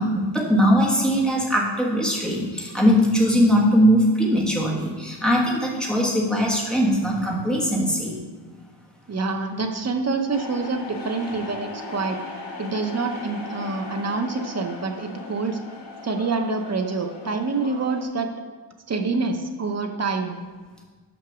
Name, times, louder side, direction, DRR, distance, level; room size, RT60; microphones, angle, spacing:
voice 1, 0.0-8.2, equal, ahead, -3 dB, 1.4 m, -20 dB
voice 2, 9.1-12.2 12.6-15.6 16.0-18.3 18.9-20.4, right 3 dB, 35° right, 5 dB, 0.7 m, -26 dB
sound 1, 10.3-18.0, left 3 dB, 65° left, 1.6 m, -38 dB
6.1 x 5.8 x 6.0 m, 1.5 s
wide cardioid pair, 140°, 44 cm